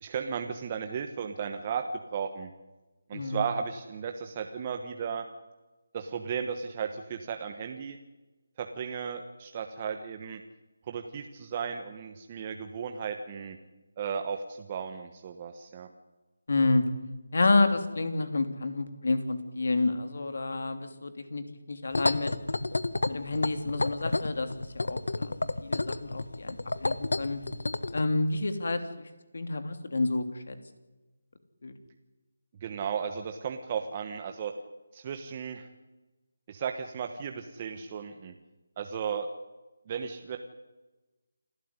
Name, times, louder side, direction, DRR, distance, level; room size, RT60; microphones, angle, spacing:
voice 1, 0.0-1.8 2.1-2.5 3.1-5.2 5.9-8.0 8.6-10.4 10.8-13.6 14.0-15.9 32.6-34.5 34.9-35.7 36.5-38.3 38.8-39.3 39.9-40.4, right 7 dB, 25° right, 6 dB, 1.2 m, -35 dB
voice 2, 3.1-3.4 16.5-16.8 17.3-22.3 23.1-25.3 25.6-27.4 27.9-29.1 29.3-30.6 31.6-31.7, left 3 dB, 60° left, 9 dB, 3.0 m, -29 dB
sound 1, 21.9-28.0, left 2 dB, 85° left, 1.4 m, -30 dB
28.0 x 13.0 x 9.8 m, 1.1 s
figure-of-eight pair, 170°, 0 cm